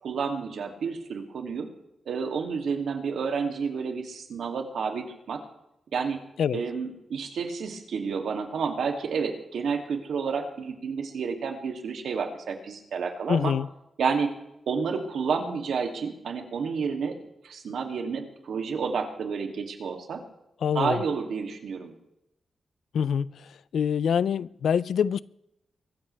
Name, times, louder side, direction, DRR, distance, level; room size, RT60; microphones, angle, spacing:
voice 1, 0.0-1.7 2.1-5.4 5.9-6.2 6.5-13.5 14.0-14.3 14.7-17.2 17.4-20.2 20.7-21.9, right 5 dB, 90° right, 2.6 m, -30 dB
voice 2, 13.3-13.7 20.6-21.0 22.9-23.3 23.7-25.2, left 7 dB, 90° left, 0.5 m, -25 dB
23.5 x 14.0 x 3.4 m
wide cardioid pair, 155°, 0 cm